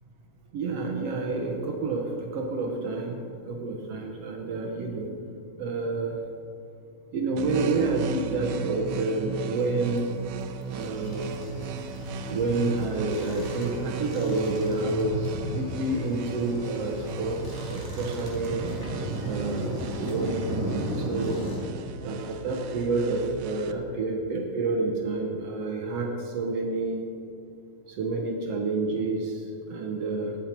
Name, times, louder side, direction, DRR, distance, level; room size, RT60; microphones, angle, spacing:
voice 1, 0.5-5.1 5.6-6.2 7.1-10.1 10.7-11.4 12.3-18.6 19.3-20.6 21.0-21.4 22.0-27.1 27.9-30.4, right 3 dB, 65° right, 2 dB, 1.7 m, -29 dB
sound 1, 7.4-23.7, right 6 dB, 85° right, 2.2 m, -37 dB
sound 2, 9.8-20.9, equal, 85° left, 3.2 m, -41 dB
sound 3, 10.7-21.6, equal, 10° left, 2.0 m, -37 dB
18.0 x 7.5 x 4.4 m, 2.6 s
omnidirectional pair, 3.7 m